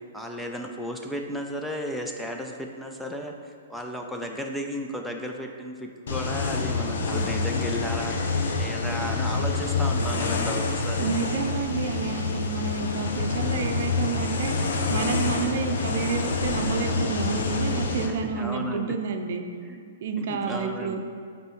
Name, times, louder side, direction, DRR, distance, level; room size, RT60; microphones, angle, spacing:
voice 1, 0.1-8.2 8.5-11.1 18.1-19.0 19.7-21.0, equal, ahead, 2 dB, 0.5 m, -34 dB
sound 1, 6.1-18.1, left 4 dB, 70° left, 0.8 m, -27 dB
voice 2, 11.0-19.4 20.0-21.0, right 5 dB, 55° right, 5 dB, 0.6 m, -29 dB
8.0 x 4.3 x 4.5 m, 2.2 s
hypercardioid pair, 155°, 0 cm